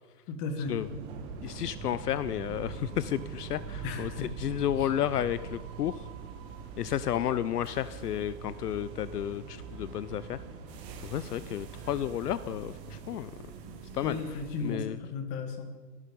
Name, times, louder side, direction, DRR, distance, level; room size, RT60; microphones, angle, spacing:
voice 1, 0.3-0.8 3.8-4.3 4.8-4.9 14.0-15.7, left 4 dB, 25° left, 6 dB, 1.9 m, -35 dB
sound 1, 0.6-14.8, right 5 dB, 20° right, 1.6 m, -43 dB
voice 2, 1.4-6.0 6.8-10.4 11.0-13.3 13.9-14.2 14.6-15.0, left 11 dB, 70° left, 15 dB, 0.7 m, -32 dB
22.0 x 11.5 x 5.4 m, 1.4 s
hypercardioid pair, 155°, 49 cm